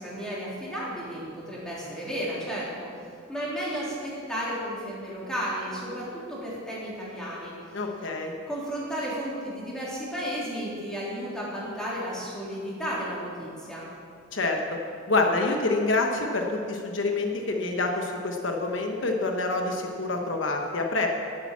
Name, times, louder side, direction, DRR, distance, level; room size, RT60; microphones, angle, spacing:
voice 1, 0.0-2.9 3.3-7.5 8.5-13.9, equal, 5° left, -7 dB, 3.4 m, -33 dB
voice 2, 7.7-8.3 14.3-14.8 15.1-21.1, left 3 dB, 70° left, 2 dB, 1.2 m, -27 dB
11.5 x 9.0 x 7.2 m, 2.5 s
head